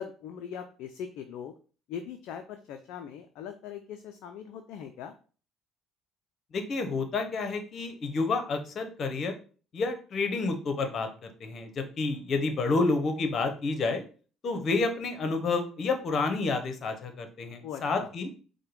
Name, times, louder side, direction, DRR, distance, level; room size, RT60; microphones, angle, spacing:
voice 1, 0.0-1.5 1.9-5.1 17.6-18.1, left 8 dB, 70° left, 6 dB, 0.3 m, -40 dB
voice 2, 6.5-9.3 9.7-14.0 14.4-18.3, left 3 dB, 50° left, 7 dB, 0.8 m, -29 dB
4.7 x 2.2 x 3.0 m, 0.39 s
hypercardioid pair, 60°, 0 cm